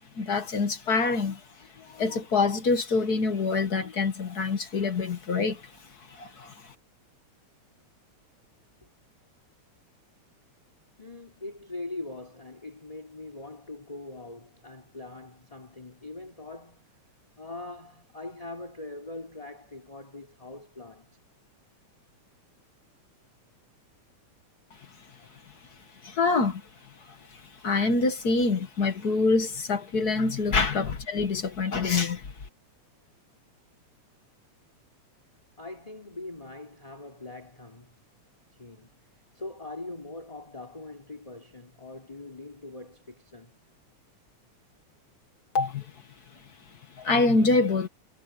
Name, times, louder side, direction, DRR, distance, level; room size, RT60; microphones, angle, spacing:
voice 1, 0.1-1.4 1.8-5.6 6.1-6.5 26.0-26.6 27.6-32.3 45.5-45.8 47.0-47.9, left 3 dB, 40° left, 1.5 m, -25 dB
voice 2, 11.0-17.0 17.4-21.2 35.6-38.0 38.6-39.1 39.3-43.6, left 2 dB, 10° left, 3.8 m, -42 dB
omnidirectional pair, 3.3 m